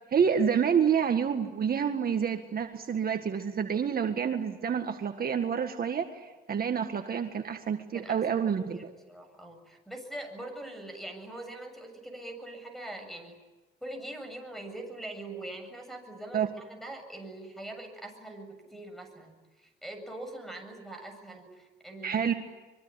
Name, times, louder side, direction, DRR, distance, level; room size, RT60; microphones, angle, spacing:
voice 1, 0.1-8.9 16.3-16.5 22.0-22.3, right 7 dB, 50° right, 5 dB, 1.8 m, -28 dB
voice 2, 7.9-13.4 13.8-22.3, right 1 dB, ahead, 7 dB, 7.5 m, -43 dB
25.0 x 23.0 x 9.9 m, 1.2 s
cardioid pair, 90°, 20 cm